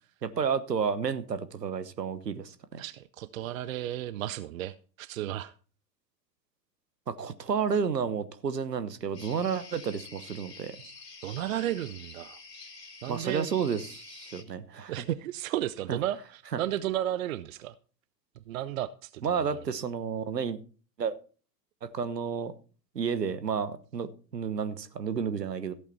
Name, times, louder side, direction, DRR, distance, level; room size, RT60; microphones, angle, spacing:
voice 1, 0.2-2.8 7.1-10.8 13.1-15.1 15.9-16.0 16.5-16.6 19.2-20.6 21.0-21.2 21.8-22.5 22.9-25.7, right 6 dB, 75° right, 13 dB, 1.2 m, -31 dB
voice 2, 2.8-5.5 10.8-10.9 11.2-12.4 13.0-13.5 14.9-17.7 18.5-19.6, right 12 dB, 55° right, 15 dB, 0.7 m, -33 dB
sound 1, 9.1-14.4, left 4 dB, 75° left, 2.3 m, -48 dB
14.5 x 8.4 x 4.4 m, 0.39 s
figure-of-eight pair, 90°, 49 cm